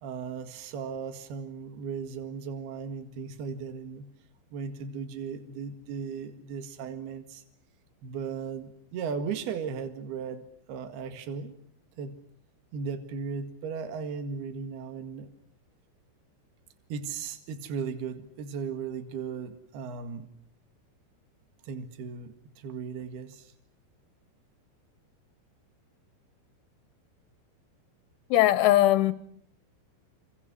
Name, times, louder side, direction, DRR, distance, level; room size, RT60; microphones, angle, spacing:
voice 1, 0.0-4.1 4.5-7.4 8.0-11.6 12.0-12.2 12.7-15.3 16.9-20.3 21.6-23.5, right 6 dB, 65° right, 3.6 m, -36 dB
voice 2, 28.3-29.1, left 14 dB, 85° left, 3.6 m, -20 dB
28.5 x 28.5 x 6.1 m
omnidirectional pair, 5.3 m